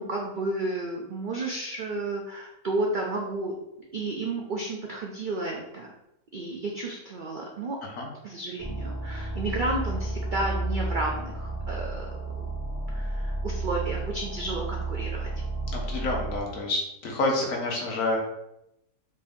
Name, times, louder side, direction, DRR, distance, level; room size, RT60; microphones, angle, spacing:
voice 1, 0.0-3.5 3.9-5.9 6.3-7.8 8.2-12.1 12.4-12.5 12.9-15.3, right 2 dB, 65° right, 0 dB, 0.5 m, -32 dB
sound 1, 8.6-16.4, right 2 dB, 15° right, 0.7 m, -32 dB
voice 2, 15.7-18.2, left 2 dB, 70° left, 0 dB, 1.3 m, -28 dB
4.3 x 2.7 x 3.5 m, 0.84 s
omnidirectional pair, 1.5 m